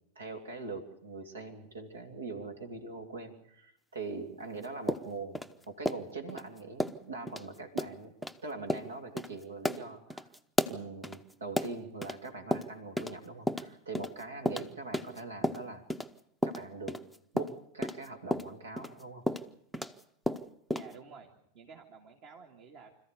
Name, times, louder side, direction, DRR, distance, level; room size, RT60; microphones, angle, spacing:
voice 1, 0.1-8.1 8.4-10.3 10.6-15.8 16.4-17.0 17.3-19.3, right 3 dB, 70° right, 6 dB, 2.9 m, -42 dB
sound 1, 4.9-6.4 6.8-7.0 7.3-7.4 7.8-7.9 8.2-8.4 8.7-8.9 9.2-9.3 9.6-12.2 12.5-13.2 13.5-16.1 16.4-20.0 20.3-20.9, equal, ahead, 0.8 m, -33 dB
voice 2, 20.7-23.0, right 5 dB, 40° right, 2 dB, 2.3 m, -52 dB
26.5 x 14.5 x 8.3 m, 0.77 s
figure-of-eight pair, 90°, 0 cm